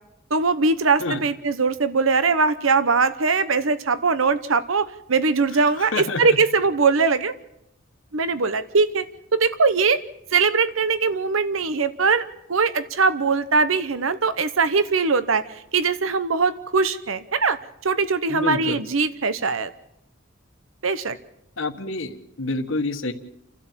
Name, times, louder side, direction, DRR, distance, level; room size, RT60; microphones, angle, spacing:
voice 1, 0.3-7.3 8.1-9.0 9.3-10.0 10.3-15.4 15.7-17.6 17.8-19.7 20.8-21.2, right 4 dB, 85° right, 13 dB, 0.9 m, -21 dB
voice 2, 5.8-6.2 18.3-18.8 21.6-23.1, left 2 dB, 75° left, 5 dB, 1.4 m, -27 dB
30.0 x 12.5 x 7.4 m, 0.83 s
head